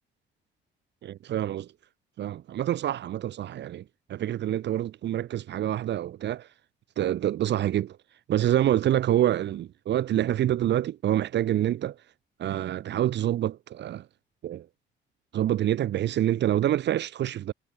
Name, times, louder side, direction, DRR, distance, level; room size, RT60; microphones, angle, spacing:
voice 1, 1.0-1.7 2.2-3.8 4.1-6.5 7.0-8.0 8.3-12.0 12.4-14.1 14.4-14.7 15.3-17.5, right 12 dB, 60° right, 0.7 m, -26 dB
cardioid pair, 90°, 20 cm